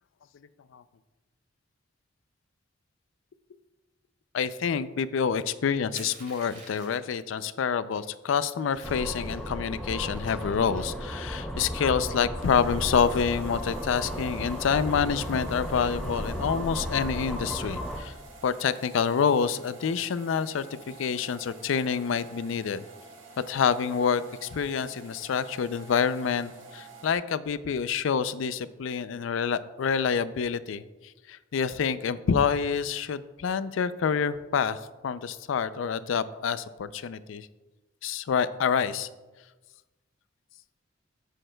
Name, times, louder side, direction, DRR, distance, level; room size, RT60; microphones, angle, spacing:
voice 1, 4.3-18.1 18.4-22.8 23.4-30.8 31.3-37.5 38.0-39.1, left 6 dB, 75° left, 15 dB, 0.4 m, -27 dB
Crushing, 5.9-7.1 7.9-8.0 8.3-9.5 10.0-11.1, right 3 dB, 40° right, 2.9 m, -48 dB
sound 1, 8.8-18.0, equal, ahead, 0.6 m, -34 dB
sound 2, 12.4-27.1, right 4 dB, 70° right, 1.7 m, -49 dB
13.5 x 6.5 x 2.2 m, 1.2 s
head